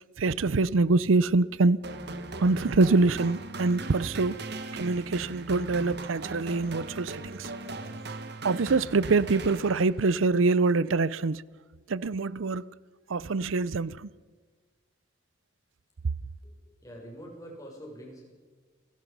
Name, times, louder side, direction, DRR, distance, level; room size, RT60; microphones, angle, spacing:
voice 1, 0.2-1.8 2.4-4.4 4.7-7.5 8.4-11.4 11.9-12.7 13.1-14.1, right 3 dB, 90° right, 0.6 m, -25 dB
sound 1, 1.8-10.2, right 2 dB, 60° right, 1.7 m, -39 dB
voice 2, 16.4-18.3, equal, 20° left, 6.9 m, -45 dB
29.0 x 18.0 x 5.5 m
head